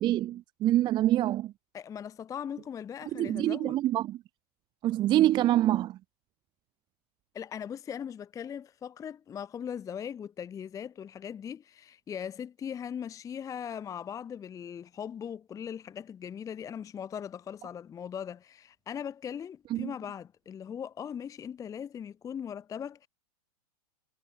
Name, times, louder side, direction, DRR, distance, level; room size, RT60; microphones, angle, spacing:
voice 1, 0.0-1.5 3.1-4.2 4.8-6.0 19.7-19.9, right 14 dB, 25° right, 0.4 m, -26 dB
voice 2, 1.7-3.8 7.3-23.1, left 8 dB, 15° left, 0.7 m, -39 dB
supercardioid pair, 140°, 20 cm